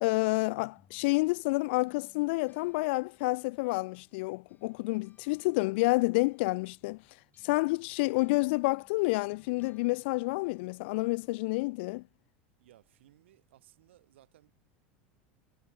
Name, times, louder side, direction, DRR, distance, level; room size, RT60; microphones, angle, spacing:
voice 1, 0.0-7.0 7.4-12.0, left 25 dB, 70° left, 0.5 m, -29 dB
sound 1, 0.7-4.2 4.5-10.9, left 7 dB, 30° left, 5.2 m, -66 dB
voice 2, 12.6-14.5, right 14 dB, 80° right, 4.1 m, -61 dB
hypercardioid pair, 95°, 6 cm